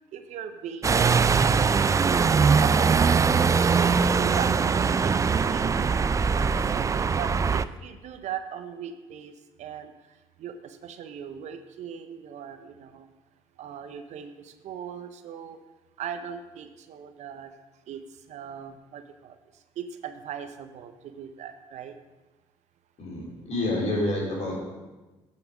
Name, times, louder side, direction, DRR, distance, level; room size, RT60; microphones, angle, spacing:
voice 1, 0.1-2.1 2.4-3.5 3.8-6.0 6.3-9.3 9.6-9.9 10.4-13.1 13.6-15.6 16.0-17.5 17.9-18.0 18.3-19.4 19.8-21.9, right 8 dB, 60° right, 9 dB, 0.7 m, -39 dB
sound 1, 0.8-7.6, right 5 dB, 25° right, 0.3 m, -22 dB
voice 2, 23.0-24.6, left 1 dB, 55° left, -3 dB, 3.4 m, -28 dB
8.9 x 5.8 x 5.1 m, 1.2 s
hypercardioid pair, 60°, 13 cm